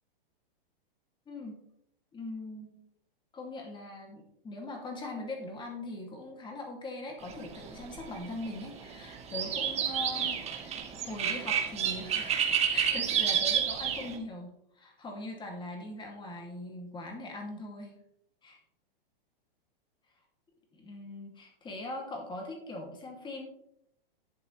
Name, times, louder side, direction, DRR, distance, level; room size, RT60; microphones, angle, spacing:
voice 1, 1.3-1.6 2.1-2.9 3.3-12.4 12.7-14.5 14.8-18.0 18.4-18.6 20.7-23.4, left 2 dB, 15° left, 1 dB, 2.8 m, -41 dB
sound 1, 7.2-14.2, right 8 dB, 20° right, 1.6 m, -30 dB
11.5 x 7.7 x 3.4 m, 0.76 s
hypercardioid pair, 130°, 29 cm